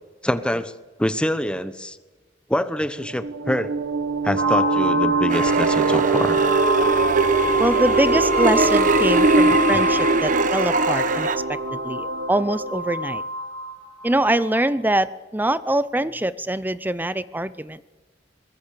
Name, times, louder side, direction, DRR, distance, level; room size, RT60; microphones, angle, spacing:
voice 1, 0.2-0.7 1.0-2.0 2.5-3.7 4.2-6.4, equal, 5° left, 12 dB, 1.1 m, -25 dB
sound 1, 3.0-13.2, right 4 dB, 80° right, 1.2 m, -24 dB
sound 2, 4.4-14.5, left 1 dB, 65° right, 4.7 m, -26 dB
sound 3, 5.3-11.4, right 3 dB, 45° right, 1.4 m, -22 dB
voice 2, 7.6-13.2 14.0-17.8, right 1 dB, 10° right, 15 dB, 0.6 m, -24 dB
23.5 x 21.0 x 6.8 m, 1.2 s
head